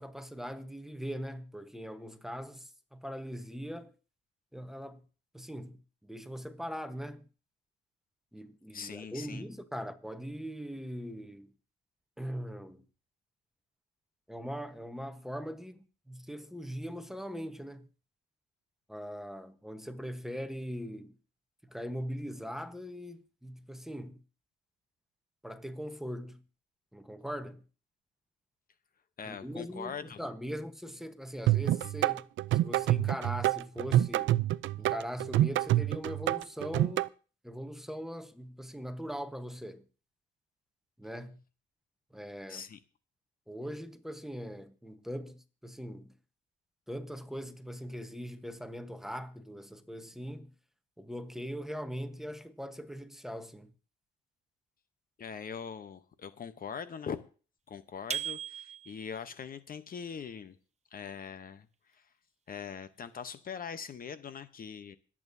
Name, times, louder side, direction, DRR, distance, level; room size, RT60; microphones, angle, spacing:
voice 1, 0.0-3.9 4.5-5.0 5.3-7.3 8.3-11.5 12.2-12.8 14.3-17.9 18.9-21.2 21.6-24.2 25.4-26.4 26.9-27.6 29.2-32.3 32.5-34.4 34.8-37.1 37.4-39.9 41.0-41.4 42.1-42.7 43.5-46.2 46.9-50.5 51.0-53.7, equal, ahead, 1.1 m, -41 dB
voice 2, 8.7-9.4 29.2-30.2 42.5-42.8 55.2-57.2 57.7-60.6 60.9-61.7 61.9-62.1 62.5-65.0, left 7 dB, 45° left, 0.9 m, -42 dB
sound 1, 31.5-37.1, right 14 dB, 75° right, 0.5 m, -27 dB
sound 2, 58.1-59.2, right 8 dB, 35° right, 0.9 m, -37 dB
25.5 x 8.6 x 2.7 m
cardioid pair, 90°, 20 cm